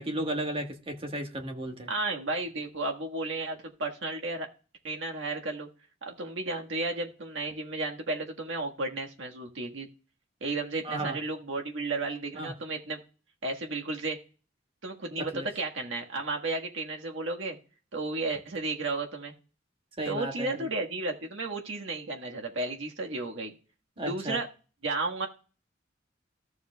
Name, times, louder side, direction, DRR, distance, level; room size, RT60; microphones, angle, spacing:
voice 1, 0.0-1.9 10.8-11.2 12.4-12.5 15.2-15.5 20.0-20.7 24.0-24.4, right 1 dB, 30° right, 3 dB, 1.4 m, -34 dB
voice 2, 1.9-4.5 4.8-5.7 6.0-9.9 10.4-13.0 13.4-14.2 14.8-17.6 17.9-19.3 20.0-23.5 24.0-24.5 24.8-25.3, right 2 dB, 80° right, 2 dB, 1.6 m, -33 dB
14.0 x 7.2 x 2.3 m, 0.36 s
head